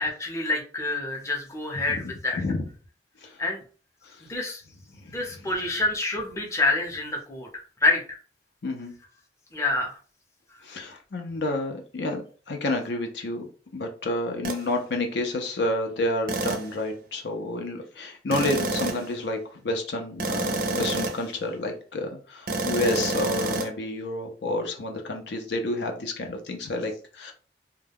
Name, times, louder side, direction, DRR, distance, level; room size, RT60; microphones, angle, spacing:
voice 1, 0.0-2.4 3.4-3.6 4.3-4.6 5.1-7.5 7.8-8.2 9.5-9.9, left 2 dB, 15° left, 0 dB, 0.6 m, -27 dB
voice 2, 5.0-5.5 8.6-8.9 10.6-12.2 12.5-13.5 13.7-27.3, left 2 dB, 80° left, 3 dB, 0.5 m, -30 dB
sound 1, 14.4-14.7 16.3-16.8 18.3-19.1 20.2-21.3 22.5-23.7, right 2 dB, 55° right, 0.5 m, -28 dB
2.3 x 2.1 x 3.4 m, 0.39 s
head